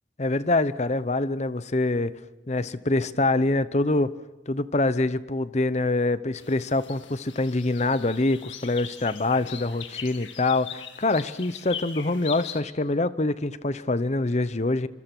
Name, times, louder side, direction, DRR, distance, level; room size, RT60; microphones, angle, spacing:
voice 1, 0.2-2.1 2.5-4.1 4.5-14.9, left 2 dB, 35° left, 15 dB, 0.8 m, -25 dB
sound 1, 6.4-12.6, left 8 dB, 80° left, 2.1 m, -41 dB
26.0 x 25.5 x 6.1 m, 1.1 s
head